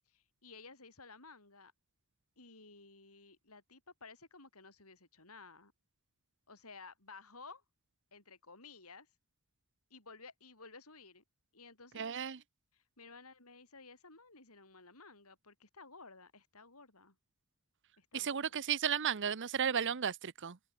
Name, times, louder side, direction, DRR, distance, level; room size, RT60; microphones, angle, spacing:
voice 1, 0.1-1.7 2.4-5.7 6.5-7.6 8.1-9.1 9.9-11.2 11.5-12.2 12.7-17.2 18.0-18.6, left 4 dB, 75° left, 7.7 m, -55 dB
voice 2, 11.9-12.4 18.1-20.6, right 8 dB, 55° right, 0.8 m, -34 dB
head